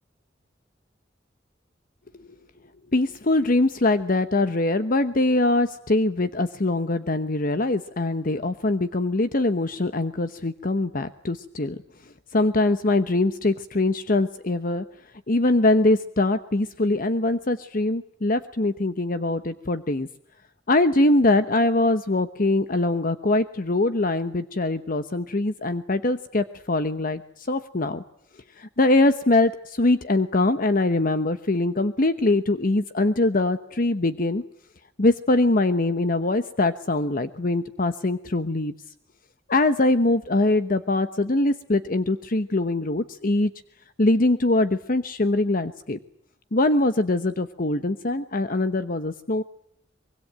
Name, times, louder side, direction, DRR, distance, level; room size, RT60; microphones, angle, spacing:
voice 1, 2.9-11.8 12.3-14.8 15.3-20.1 20.7-28.0 28.6-34.4 35.0-38.7 39.5-43.5 44.0-46.0 46.5-49.4, left 2 dB, 50° left, 10 dB, 1.0 m, -23 dB
24.5 x 23.5 x 9.0 m, 0.70 s
head